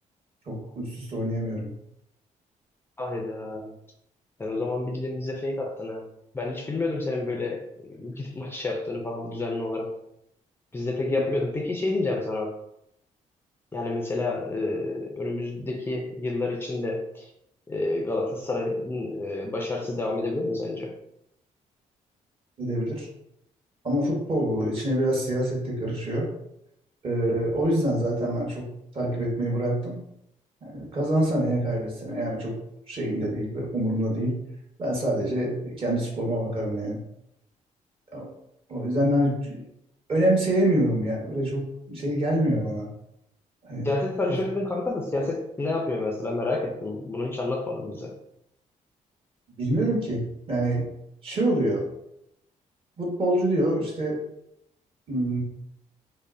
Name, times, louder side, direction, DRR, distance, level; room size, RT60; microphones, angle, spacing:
voice 1, 0.5-1.7 11.1-11.2 22.6-23.1 23.8-26.3 27.0-28.7 28.9-30.0 30.6-32.5 32.9-34.3 34.8-37.0 38.1-38.3 38.7-39.6 40.1-42.9 43.6-43.9 49.6-50.8 51.2-51.8 53.0-54.2 55.1-55.4, right 1 dB, 40° right, -3 dB, 1.3 m, -26 dB
voice 2, 3.0-3.7 4.4-6.1 6.3-10.0 10.7-12.5 13.7-17.3 17.7-20.9 43.8-48.1, left 2 dB, 15° left, 0 dB, 0.5 m, -29 dB
5.2 x 2.1 x 2.6 m, 0.79 s
cardioid pair, 135°, 13 cm